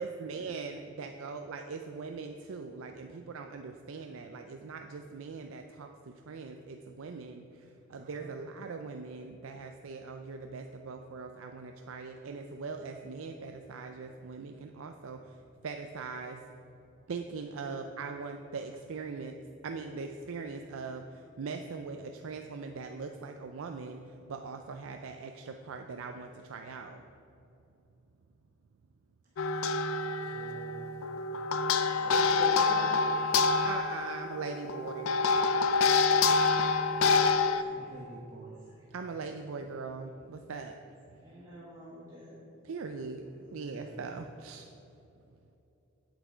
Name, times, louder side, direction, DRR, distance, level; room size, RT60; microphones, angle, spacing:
voice 1, 0.0-5.9 6.3-7.4 7.9-15.2 15.6-16.4 17.1-19.3 19.6-21.0 21.4-24.0 24.3-27.0 33.6-35.1 38.9-40.7 42.7-43.2 43.5-44.7, right 4 dB, 75° right, 5 dB, 0.4 m, -41 dB
voice 2, 8.0-8.3 30.3-30.9 32.1-32.2 37.7-38.6 43.3-44.0, right 1 dB, 40° right, -3 dB, 0.9 m, -49 dB
sound 1, 29.4-37.6, left 4 dB, 80° left, 0.5 m, -27 dB
voice 3, 31.8-33.0 37.6-37.9 38.4-38.9 41.2-42.4, left 1 dB, 15° right, -9 dB, 1.7 m, -45 dB
8.1 x 8.1 x 5.0 m, 2.9 s
head